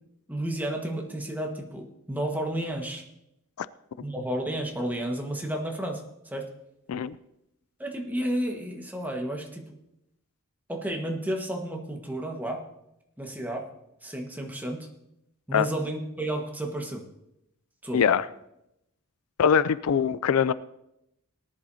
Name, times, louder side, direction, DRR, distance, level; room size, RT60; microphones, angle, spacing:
voice 1, 0.3-3.0 4.0-6.5 7.8-9.6 10.7-12.7 13.2-13.7 14.0-14.9 15.5-17.0 17.8-18.0, right 1 dB, 10° right, 1 dB, 1.5 m, -32 dB
voice 2, 17.9-18.2 19.4-20.5, left 7 dB, 80° left, 16 dB, 0.4 m, -22 dB
19.0 x 10.5 x 2.8 m, 0.83 s
head